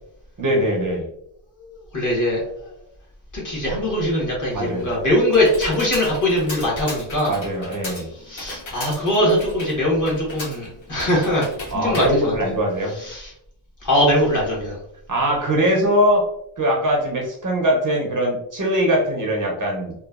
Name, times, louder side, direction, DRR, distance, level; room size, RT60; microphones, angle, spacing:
voice 1, 0.4-1.1 4.5-4.9 7.3-8.1 11.7-12.9 15.1-16.3 16.6-19.9, equal, 40° right, -1 dB, 0.6 m, -21 dB
voice 2, 1.9-2.4 3.3-7.4 8.3-11.5 11.7-12.3 13.0-13.3 13.8-14.7, left 1 dB, 40° left, -4 dB, 1.2 m, -21 dB
Computer keyboard, 4.5-13.1, left 2 dB, 65° left, 1.3 m, -37 dB
3.0 x 2.2 x 2.3 m, 0.75 s
wide cardioid pair, 165°, 48 cm